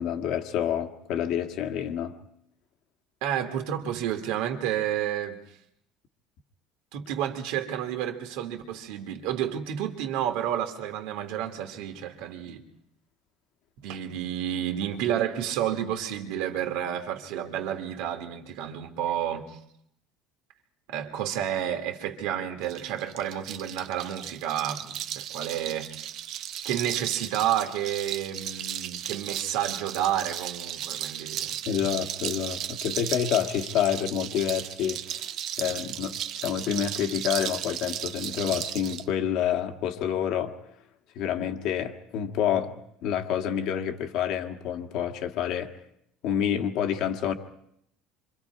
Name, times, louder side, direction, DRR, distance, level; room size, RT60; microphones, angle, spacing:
voice 1, 0.0-2.2 31.7-35.2 35.6-40.5 41.1-45.8 46.2-47.3, left 9 dB, 50° left, 1.7 m, -28 dB
voice 2, 3.2-5.4 6.9-12.6 13.8-19.6 20.9-25.9 26.6-31.9, right 10 dB, 65° right, 2.3 m, -30 dB
sound 1, 22.6-39.0, right 11 dB, 40° right, 0.8 m, -35 dB
27.5 x 25.5 x 4.8 m
cardioid pair, 180°, 0 cm